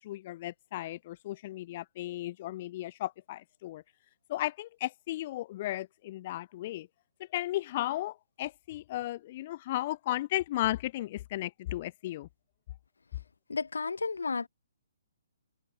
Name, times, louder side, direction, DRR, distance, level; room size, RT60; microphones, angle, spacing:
voice 1, 0.0-3.8 4.3-6.9 7.2-12.3, left 15 dB, 40° left, 1.2 m, -35 dB
voice 2, 13.5-14.5, left 4 dB, 70° left, 4.0 m, -32 dB
figure-of-eight pair, 130°, 0 cm